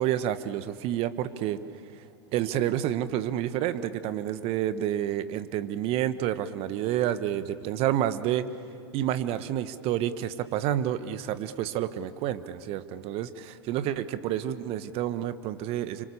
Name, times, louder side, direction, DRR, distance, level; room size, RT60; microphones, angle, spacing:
voice 1, 0.0-1.6 2.3-8.4 8.9-16.1, right 11 dB, 45° right, 13 dB, 1.3 m, -29 dB
29.5 x 25.5 x 7.1 m, 2.7 s
hypercardioid pair, 90°, 14 cm